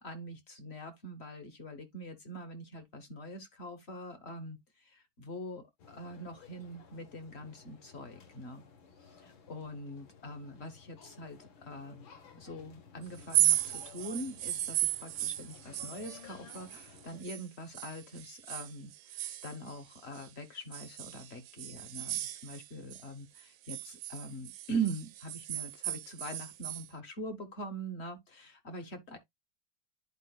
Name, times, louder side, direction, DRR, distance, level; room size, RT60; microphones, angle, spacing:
voice 1, 0.0-8.6 9.0-12.1 12.4-29.2, right 2 dB, 45° left, 0.9 m, -43 dB
sound 1, 5.8-17.2, left 6 dB, 75° left, 1.9 m, -56 dB
sound 2, 13.2-17.4 17.7-20.3 20.7-23.1 23.4-26.9, right 15 dB, 75° right, 1.1 m, -35 dB
11.0 x 4.4 x 2.2 m
omnidirectional pair, 2.2 m